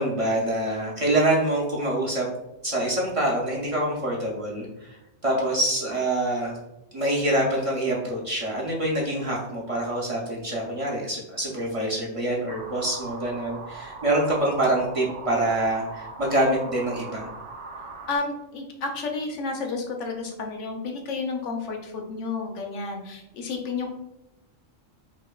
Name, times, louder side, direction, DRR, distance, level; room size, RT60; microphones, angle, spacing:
voice 1, 0.0-2.3 2.6-5.0 5.2-6.6 6.9-17.3, right 1 dB, 35° right, -4 dB, 0.6 m, -25 dB
sound 1, 12.5-18.2, right 3 dB, 85° right, 1.0 m, -40 dB
voice 2, 18.1-23.9, left 4 dB, 90° left, 2 dB, 1.0 m, -31 dB
5.1 x 2.2 x 2.3 m, 0.90 s
omnidirectional pair, 1.2 m